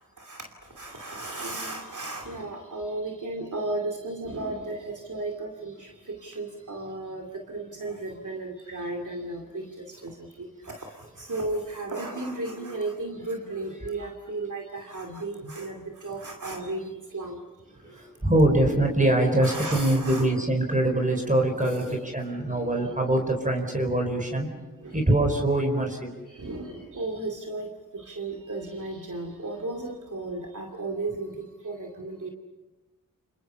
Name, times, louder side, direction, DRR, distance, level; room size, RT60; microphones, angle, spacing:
voice 1, 0.8-5.7 6.2-9.6 10.0-10.1 10.4-10.5 11.2-15.7 16.0-17.4 19.4-20.3 21.9-22.0 24.8-24.9 26.4-27.7 28.1-31.3 31.6-32.3, right 2 dB, 60° right, 2 dB, 2.7 m, -34 dB
voice 2, 17.8-24.5 24.9-26.1, right 1 dB, 25° right, 3 dB, 4.8 m, -24 dB
30.0 x 27.0 x 5.6 m, 1.2 s
wide cardioid pair, 75°, 34 cm